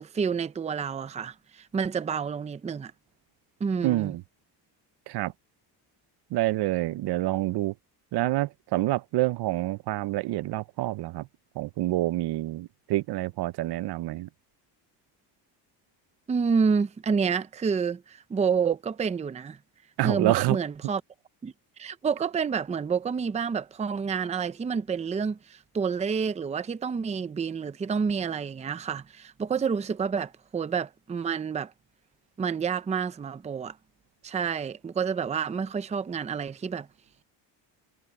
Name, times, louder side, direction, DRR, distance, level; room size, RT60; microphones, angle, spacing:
voice 1, 0.0-2.9 3.6-4.1 16.3-19.6 20.0-21.0 21.4-31.7 32.4-33.8 34.2-36.9, right 6 dB, 15° right, 0.6 m, -29 dB
voice 2, 3.8-4.2 5.1-5.3 6.3-7.7 8.1-11.3 11.6-14.3 20.0-20.6, right 16 dB, 65° right, 0.7 m, -27 dB
cardioid pair, 155°, 43 cm